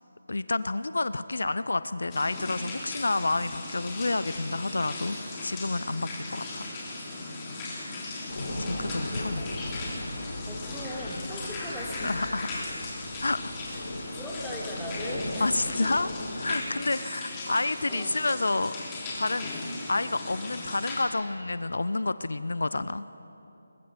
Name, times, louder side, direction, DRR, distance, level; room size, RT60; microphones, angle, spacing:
voice 1, 0.3-6.6 8.7-9.4 12.0-12.6 13.2-13.4 15.4-16.1 16.4-18.7 19.1-19.5 19.9-23.0, left 2 dB, 75° left, 14 dB, 0.6 m, -29 dB
sound 1, 2.1-21.0, left 2 dB, 20° left, 3.2 m, -38 dB
voice 2, 7.5-8.0 8.8-9.5 9.8-10.1 10.5-12.1 13.7-13.8 14.1-15.9 17.0-17.4 17.9-18.1, equal, ahead, -5 dB, 2.3 m, -41 dB
sound 2, 8.3-16.5, left 1 dB, 55° left, 4.3 m, -38 dB
21.0 x 21.0 x 6.0 m, 3.0 s
figure-of-eight pair, 160°, 0 cm